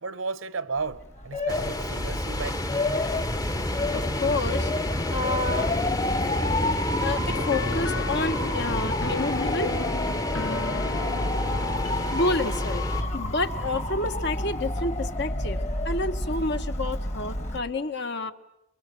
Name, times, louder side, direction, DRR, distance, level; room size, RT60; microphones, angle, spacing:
voice 1, 0.0-2.7, right 4 dB, 75° right, 0.9 m, -34 dB
Motor vehicle (road) / Siren, 0.8-17.6, left 2 dB, 35° left, 1.8 m, -31 dB
sound 1, 1.5-13.0, left 1 dB, 15° left, 1.0 m, -29 dB
voice 2, 3.9-4.7 5.1-5.7 7.0-9.7 12.1-12.9 13.1-15.6 15.8-18.3, left 2 dB, 55° left, 1.4 m, -29 dB
sound 2, 7.3-12.5, left 2 dB, 75° left, 1.3 m, -35 dB
28.0 x 23.0 x 7.8 m
head